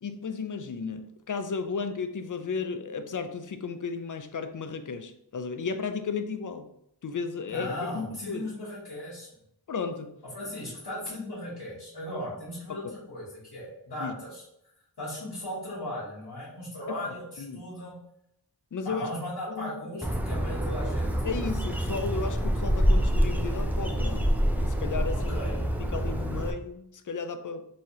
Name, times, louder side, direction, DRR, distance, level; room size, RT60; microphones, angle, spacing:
voice 1, 0.0-6.7 7.0-8.5 9.7-10.2 12.7-13.0 14.0-14.1 16.9-17.0 17.4-17.6 18.7-19.1 19.5-20.0 21.2-25.4 25.6-27.7, left 5 dB, 50° left, 9 dB, 0.5 m, -34 dB
voice 2, 7.5-9.3 10.3-14.4 15.0-18.0 18.8-21.1 25.1-25.6, left 1 dB, 75° left, -9 dB, 1.5 m, -37 dB
Bird, 20.0-26.5, equal, 5° right, 0.4 m, -26 dB
4.1 x 2.7 x 3.0 m, 0.74 s
wide cardioid pair, 45°, 40 cm